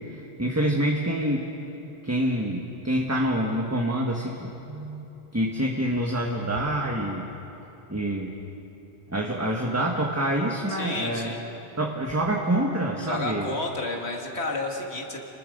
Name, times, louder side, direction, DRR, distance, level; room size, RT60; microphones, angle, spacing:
voice 1, 0.0-1.5 2.0-7.3 7.9-8.3 9.1-11.3 11.8-13.5, right 1 dB, 15° right, 0 dB, 1.4 m, -27 dB
voice 2, 10.7-11.4 13.0-15.2, left 2 dB, 70° left, 2 dB, 2.4 m, -31 dB
29.5 x 20.0 x 5.3 m, 2.9 s
omnidirectional pair, 1.1 m